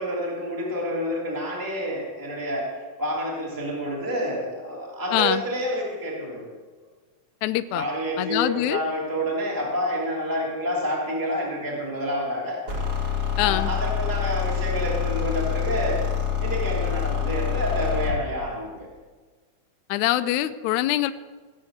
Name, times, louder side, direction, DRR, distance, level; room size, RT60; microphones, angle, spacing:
voice 1, 0.0-6.5 7.7-12.7 13.4-16.1 16.4-18.9, equal, 5° right, -4 dB, 2.5 m, -28 dB
voice 2, 5.1-5.4 7.4-7.9 8.2-8.8 13.4-13.7 19.9-21.1, left 14 dB, 80° left, 10 dB, 1.9 m, -24 dB
sound 1, 12.7-18.2, left 8 dB, 30° right, 2.7 m, -26 dB
18.0 x 7.5 x 8.0 m, 1.4 s
omnidirectional pair, 3.5 m